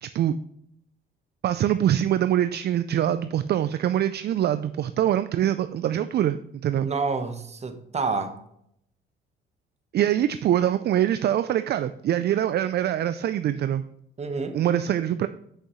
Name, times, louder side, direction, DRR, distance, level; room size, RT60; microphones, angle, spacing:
voice 1, 0.0-0.4 1.4-6.9 9.9-13.8 14.5-15.3, right 11 dB, 55° right, 12 dB, 0.4 m, -24 dB
voice 2, 6.8-8.4 14.2-14.6, right 4 dB, 35° right, 8 dB, 1.0 m, -28 dB
8.1 x 6.5 x 3.1 m, 0.72 s
cardioid pair, 90°, 20 cm